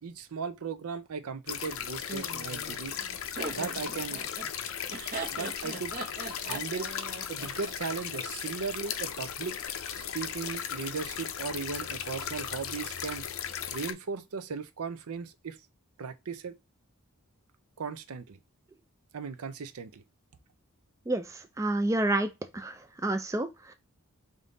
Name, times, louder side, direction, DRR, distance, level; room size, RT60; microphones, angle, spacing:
voice 1, 0.0-3.0 3.5-4.2 5.3-6.0 6.4-6.9 7.3-9.6 10.0-13.2 13.7-15.6 16.0-16.5 17.8-18.4 19.1-20.0, right 5 dB, 85° right, 0.5 m, -37 dB
sound 1, 1.5-13.9, left 8 dB, 70° left, 0.5 m, -36 dB
Laughter, 2.1-8.2, right 3 dB, 40° right, 0.8 m, -40 dB
voice 2, 21.6-22.8 23.0-23.7, right 2 dB, 15° right, 0.3 m, -29 dB
3.6 x 2.7 x 3.8 m
head